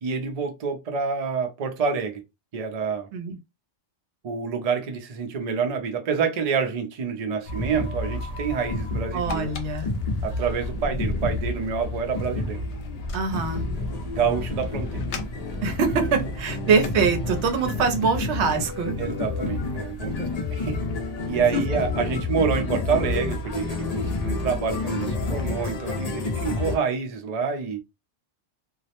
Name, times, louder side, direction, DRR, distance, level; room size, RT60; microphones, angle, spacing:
voice 1, 0.0-2.2 2.5-3.1 4.2-9.5 10.2-12.6 14.1-15.0 19.0-20.8 21.3-27.8, right 6 dB, 55° right, 0.4 m, -27 dB
sound 1, 7.5-26.8, left 2 dB, 55° left, 0.4 m, -29 dB
sound 2, 8.8-17.9, left 4 dB, 75° left, 0.9 m, -41 dB
voice 2, 9.1-9.9 13.1-13.6 15.6-19.0 21.5-21.6, right 5 dB, 75° right, 0.9 m, -24 dB
2.3 x 2.0 x 2.8 m
omnidirectional pair, 1.2 m